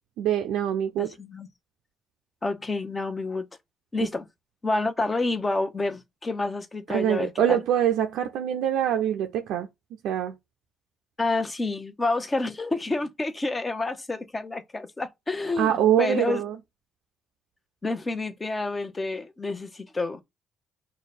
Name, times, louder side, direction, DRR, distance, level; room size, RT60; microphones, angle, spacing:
voice 1, 0.2-1.1 6.9-9.7 10.0-10.3 15.6-16.6, right 10 dB, 70° right, 0.4 m, -24 dB
voice 2, 1.0-1.5 2.4-3.5 3.9-4.3 4.6-7.6 11.2-15.7 16.0-16.4 17.8-20.2, left 2 dB, 25° left, 0.9 m, -29 dB
4.9 x 2.2 x 4.2 m
hypercardioid pair, 45°, 0 cm